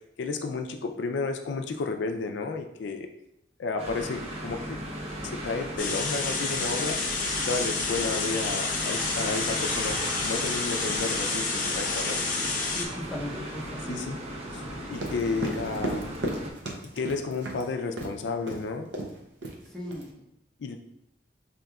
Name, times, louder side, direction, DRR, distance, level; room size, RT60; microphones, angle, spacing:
voice 1, 0.2-3.1 3.6-4.8 5.2-7.0 7.5-12.2 13.9-14.2 14.5-14.6 14.9-16.1 17.0-18.9 20.6-20.8, left 4 dB, 80° left, 5 dB, 0.4 m, -32 dB
sound 1, 3.8-16.5, right 1 dB, 35° right, 0.7 m, -36 dB
sound 2, 5.8-12.9, left 3 dB, 50° left, 0.7 m, -29 dB
voice 2, 12.7-14.2 19.6-20.1, left 1 dB, ahead, -4 dB, 0.7 m, -38 dB
sound 3, 14.9-17.6 18.0-18.2 18.5-18.6 18.9-19.2 19.4-20.0, right 1 dB, 85° right, 0.6 m, -34 dB
5.3 x 2.8 x 2.3 m, 0.80 s
head